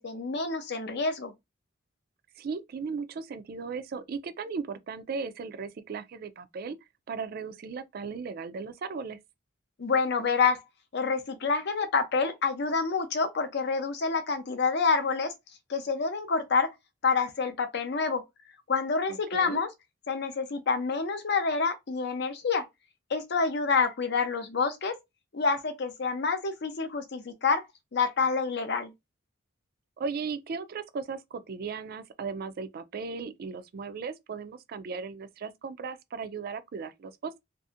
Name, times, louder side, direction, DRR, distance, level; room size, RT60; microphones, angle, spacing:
voice 1, 0.0-1.3 9.8-10.6 10.9-15.3 15.7-16.7 17.0-18.2 18.7-19.7 20.1-22.6 23.1-24.9 25.3-27.6 27.9-28.9, left 4 dB, 55° left, 0.6 m, -27 dB
voice 2, 2.4-6.8 7.1-9.2 19.1-19.6 30.0-37.4, right 5 dB, 50° right, 0.3 m, -37 dB
2.7 x 2.5 x 2.4 m
head